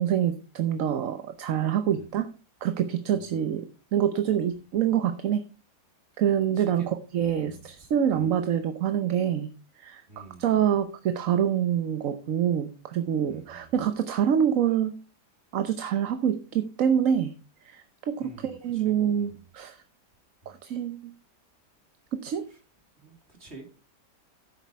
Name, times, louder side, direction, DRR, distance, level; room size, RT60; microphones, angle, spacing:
voice 1, 0.0-2.3 2.6-3.7 3.9-5.4 6.2-9.5 9.8-14.9 15.5-17.3 17.6-19.8 20.5-21.1 22.1-22.5, right 9 dB, 60° right, 9 dB, 1.1 m, -26 dB
voice 2, 6.5-6.9 7.4-7.7 8.1-8.4 10.1-10.5 13.3-13.7 18.2-19.4 20.4-20.6 22.5-22.6 23.0-23.7, right 2 dB, 40° right, 3 dB, 3.1 m, -49 dB
11.0 x 8.3 x 4.5 m, 0.34 s
omnidirectional pair, 1.8 m